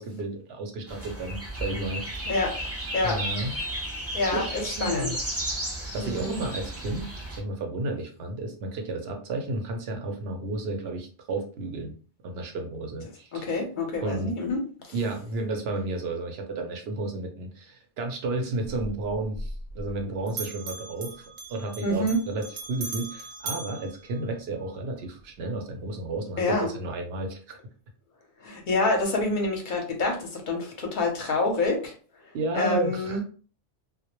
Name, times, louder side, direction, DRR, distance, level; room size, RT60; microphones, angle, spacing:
voice 1, 0.0-2.2 3.0-3.5 4.3-5.2 5.7-7.1 7.4-11.9 12.2-13.5 14.0-14.3 14.9-27.6 32.3-33.2, right 2 dB, 65° right, 3 dB, 0.7 m, -32 dB
sound 1, 0.9-7.4, right 1 dB, 20° right, 0.4 m, -34 dB
voice 2, 2.3-2.6 2.9-3.2 4.1-5.1 6.0-6.4 13.3-14.6 14.8-14.9 21.8-22.2 26.4-26.7 28.4-31.9 32.5-33.2, left 2 dB, 50° left, 2 dB, 0.7 m, -27 dB
Bell, 18.6-20.0 20.3-24.8, right 3 dB, 90° right, 1.0 m, -39 dB
2.1 x 2.0 x 2.9 m, 0.40 s
omnidirectional pair, 1.3 m